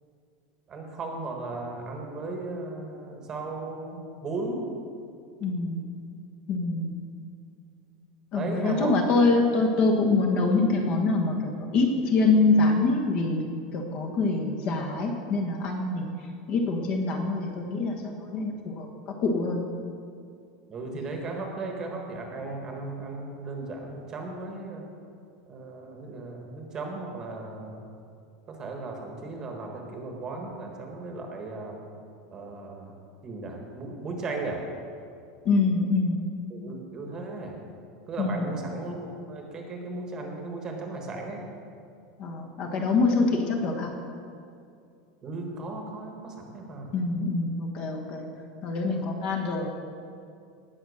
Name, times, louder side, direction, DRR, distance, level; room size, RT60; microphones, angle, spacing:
voice 1, 0.7-4.6 8.3-9.2 20.7-24.8 25.5-27.8 28.5-31.8 32.3-32.9 33.2-34.6 36.5-37.6 38.1-41.5 45.2-46.9, right 3 dB, 20° right, 2 dB, 1.4 m, -36 dB
voice 2, 5.4-5.8 6.5-6.9 8.3-16.1 16.5-18.9 19.2-19.6 35.4-36.3 38.2-38.7 42.2-43.9 46.9-48.3 48.6-49.7, left 3 dB, 35° left, 2 dB, 1.3 m, -25 dB
18.0 x 6.2 x 6.4 m, 2.4 s
supercardioid pair, 180°, 3 cm